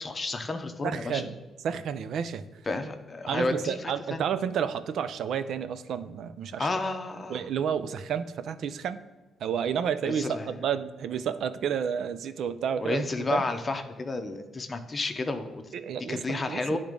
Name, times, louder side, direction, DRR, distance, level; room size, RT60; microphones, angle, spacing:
voice 1, 0.0-1.3 2.7-4.2 6.6-7.4 10.0-10.5 12.8-15.6 16.1-16.8, left 2 dB, 30° left, 7 dB, 0.8 m, -31 dB
voice 2, 0.8-2.5 3.3-6.7 7.3-9.0 9.4-13.0 13.3-13.4 15.7-16.8, right 8 dB, 70° right, 12 dB, 0.5 m, -31 dB
10.0 x 3.6 x 5.1 m, 1.2 s
cardioid pair, 90°, 0 cm